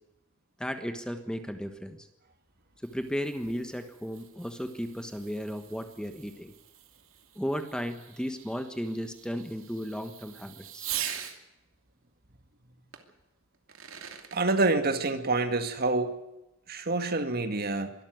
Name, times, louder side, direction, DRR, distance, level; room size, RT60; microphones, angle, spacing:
voice 1, 0.6-2.1 2.8-6.5 7.3-10.9, equal, 5° left, 8 dB, 1.3 m, -35 dB
Fireworks, 2.5-11.4 12.9-13.0 13.5-14.4, right 10 dB, 65° right, 2.7 m, -43 dB
voice 2, 14.3-16.2 16.7-17.9, right 3 dB, 45° right, 8 dB, 2.0 m, -27 dB
23.5 x 13.0 x 9.3 m, 0.93 s
head